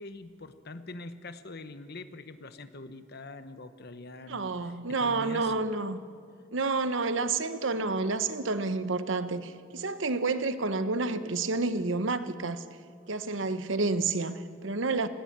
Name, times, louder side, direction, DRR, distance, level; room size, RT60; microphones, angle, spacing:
voice 1, 0.0-5.7, left 2 dB, 55° left, 11 dB, 1.1 m, -44 dB
voice 2, 4.3-6.0 6.5-12.6 13.1-15.1, right 3 dB, 70° right, 11 dB, 1.0 m, -29 dB
19.0 x 16.5 x 8.8 m, 2.3 s
head